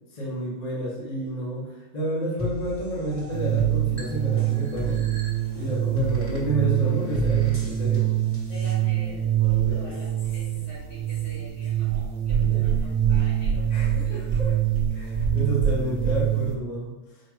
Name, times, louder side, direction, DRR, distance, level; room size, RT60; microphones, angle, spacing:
voice 1, 0.1-1.7 1.9-5.0 5.5-8.1 9.6-9.9 12.4-12.7 13.7-14.5 14.9-16.9, right 1 dB, 35° left, -6 dB, 1.1 m, -30 dB
sound 1, 2.4-8.7, left 1 dB, 10° right, 1.2 m, -35 dB
sound 2, 3.3-16.6, right 11 dB, 70° right, 0.8 m, -25 dB
voice 2, 8.5-14.3, left 1 dB, 70° left, -6 dB, 2.1 m, -45 dB
4.5 x 2.5 x 4.7 m, 1.0 s
omnidirectional pair, 1.3 m